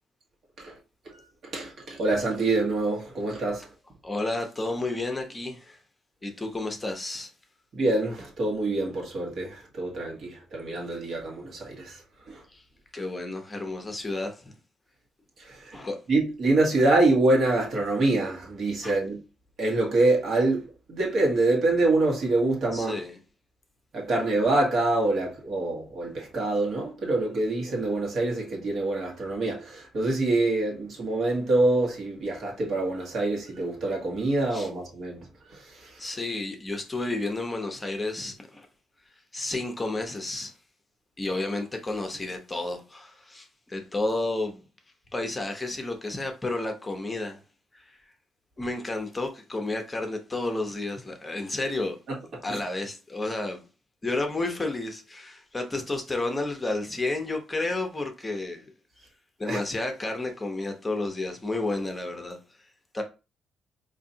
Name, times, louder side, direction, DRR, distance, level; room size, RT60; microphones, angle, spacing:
voice 1, 1.5-3.7 7.7-12.0 16.1-19.2 19.6-23.0 23.9-35.2 52.5-52.6 59.5-59.6, right 2 dB, 55° right, 1.4 m, -25 dB
voice 2, 4.0-5.8 6.2-7.3 12.5-12.6 12.9-14.5 15.7-16.0 18.8-19.0 22.7-23.2 34.5-34.7 36.0-38.7 39.3-40.5 41.2-44.6 45.1-47.4 47.7-48.0 48.6-52.0 52.4-53.6 54.0-58.7 59.4-62.4 62.9-63.0, left 2 dB, 20° left, 0.8 m, -31 dB
4.0 x 2.7 x 2.8 m
cardioid pair, 90°, 0 cm